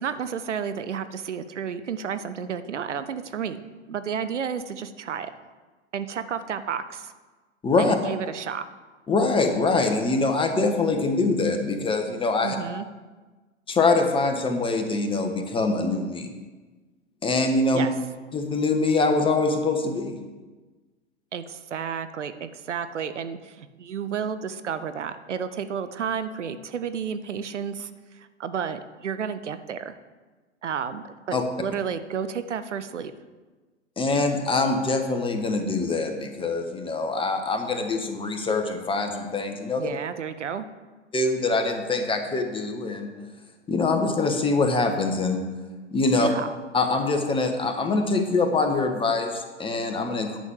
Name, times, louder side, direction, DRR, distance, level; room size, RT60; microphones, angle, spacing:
voice 1, 0.0-3.6 3.9-5.3 5.9-7.1 7.8-8.6 12.4-12.8 17.7-17.9 21.3-30.0 30.6-33.1 39.8-40.7 46.2-46.6, right 7 dB, 80° right, 11 dB, 0.9 m, -31 dB
voice 2, 7.6-8.0 9.1-12.6 13.7-16.3 17.2-17.9 18.3-20.2 31.3-31.4 34.0-39.9 41.1-43.1 43.7-45.4 45.9-46.3 46.7-50.4, left 3 dB, 15° left, 4 dB, 1.4 m, -24 dB
10.0 x 6.3 x 7.3 m, 1.3 s
figure-of-eight pair, 105°, 35 cm